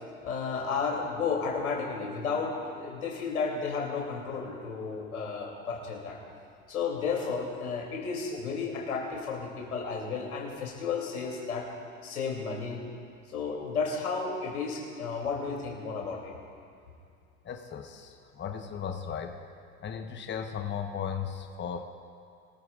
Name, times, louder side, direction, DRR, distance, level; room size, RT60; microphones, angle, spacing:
voice 1, 0.2-6.2 6.7-11.7 12.0-12.8 13.3-16.3, left 5 dB, 90° left, -1 dB, 2.9 m, -33 dB
voice 2, 17.4-19.3 19.8-21.9, left 7 dB, 25° left, 5 dB, 1.1 m, -36 dB
23.5 x 14.5 x 2.4 m, 2.4 s
hypercardioid pair, 80°, 42 cm